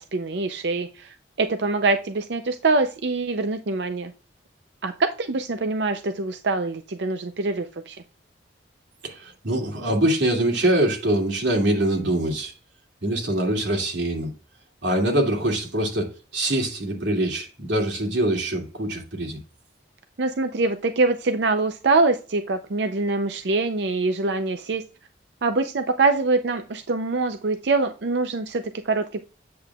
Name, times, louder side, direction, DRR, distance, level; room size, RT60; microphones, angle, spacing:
voice 1, 0.0-4.1 4.8-8.0 20.2-24.8 25.4-29.2, right 3 dB, 65° right, 0.6 m, -24 dB
voice 2, 9.0-12.5 13.0-14.3 14.8-19.4, right 1 dB, 85° right, 2.4 m, -24 dB
8.5 x 7.7 x 2.3 m
head